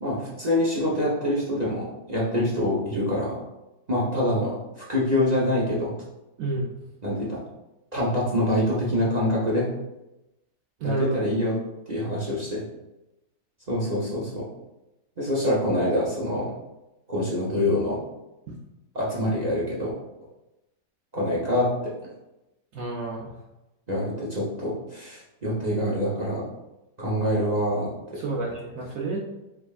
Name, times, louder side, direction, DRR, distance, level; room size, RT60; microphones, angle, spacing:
voice 1, 0.0-3.4 3.9-5.9 7.0-7.4 7.9-9.7 10.8-11.6 11.9-12.6 13.7-14.5 15.2-16.5 17.1-18.0 18.9-19.9 21.1-21.9 23.9-26.4 27.0-28.2, left 1 dB, 35° right, -7 dB, 0.6 m, -25 dB
voice 2, 6.4-6.7 10.8-11.2 22.7-23.3 28.2-29.2, right 3 dB, 65° right, -3 dB, 0.9 m, -29 dB
5.1 x 3.4 x 2.4 m, 0.98 s
omnidirectional pair, 2.0 m